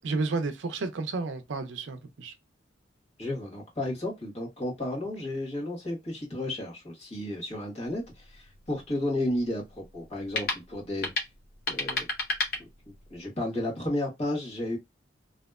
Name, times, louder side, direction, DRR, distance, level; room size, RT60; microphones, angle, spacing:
voice 1, 0.0-2.3, right 3 dB, 75° right, 0.5 m, -31 dB
voice 2, 3.2-11.1 11.7-12.1 12.9-14.8, left 1 dB, 35° left, 1.3 m, -33 dB
sound 1, 7.9-13.2, left 3 dB, 50° left, 0.7 m, -35 dB
2.7 x 2.1 x 2.3 m
head